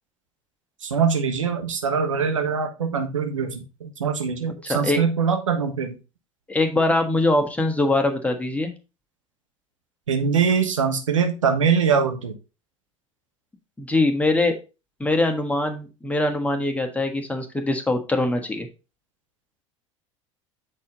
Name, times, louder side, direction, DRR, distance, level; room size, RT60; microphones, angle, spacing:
voice 1, 0.8-6.0 10.1-12.3, right 6 dB, 75° right, 5 dB, 1.3 m, -23 dB
voice 2, 4.7-5.0 6.5-8.7 13.8-14.5 15.0-18.7, left 2 dB, 10° left, 5 dB, 1.4 m, -22 dB
7.7 x 4.2 x 3.9 m, 0.30 s
figure-of-eight pair, 70°, 17 cm